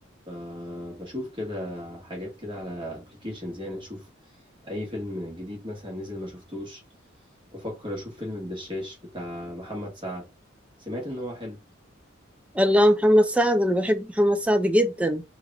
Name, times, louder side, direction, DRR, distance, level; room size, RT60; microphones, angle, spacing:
voice 1, 0.3-4.1 4.6-6.8 7.5-10.2 10.8-11.6, left 1 dB, 25° right, 1.6 m, -35 dB
voice 2, 12.5-15.2, equal, 5° right, 0.4 m, -20 dB
3.4 x 2.5 x 3.5 m
head